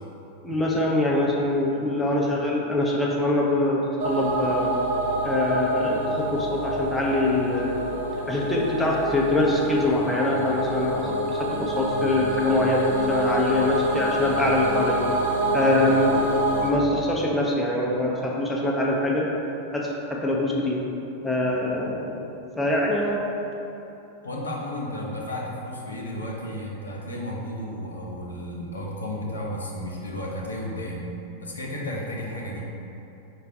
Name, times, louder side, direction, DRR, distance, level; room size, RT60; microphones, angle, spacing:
voice 1, 0.4-4.8 5.2-7.8 8.3-15.0 15.5-16.3 16.6-19.3 19.7-20.8 21.2-22.2 22.6-23.2, left 1 dB, 5° left, -4 dB, 0.6 m, -24 dB
sound 1, 4.0-16.7, right 1 dB, 65° right, 0.7 m, -27 dB
voice 2, 24.2-31.1 31.4-32.6, left 1 dB, 75° left, -3 dB, 0.6 m, -33 dB
4.8 x 2.3 x 4.7 m, 2.9 s
figure-of-eight pair, 90°, 0 cm